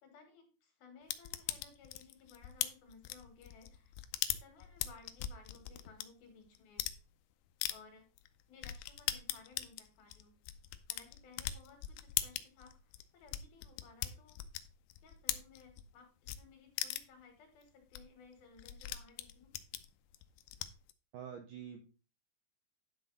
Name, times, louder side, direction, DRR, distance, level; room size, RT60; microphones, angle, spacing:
voice 1, 0.0-3.9 4.2-6.8 7.7-8.1 8.5-10.3 10.9-14.4 15.0-19.5, left 5 dB, 65° left, 5 dB, 3.5 m, -59 dB
sound 1, 1.1-6.0 6.6-7.0 7.6-7.7 8.2-8.3 8.6-15.9 16.3-16.4 16.8-17.2 17.6-17.7 17.9-18.0 18.3-20.9, left 13 dB, 80° left, 2.3 m, -39 dB
voice 2, 21.1-21.8, right 8 dB, 75° right, 4 dB, 2.0 m, -46 dB
10.5 x 6.1 x 4.0 m, 0.34 s
omnidirectional pair, 5.0 m